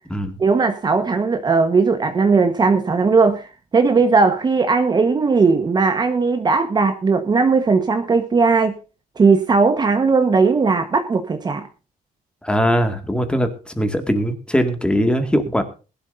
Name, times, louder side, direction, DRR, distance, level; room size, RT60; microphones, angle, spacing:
voice 1, 0.4-3.5 3.7-8.7 9.2-11.6, right 4 dB, 25° right, 8 dB, 1.2 m, -17 dB
voice 2, 12.4-15.6, equal, 5° left, 7 dB, 2.0 m, -20 dB
20.5 x 12.0 x 2.6 m, 0.33 s
cardioid pair, 150°, 16 cm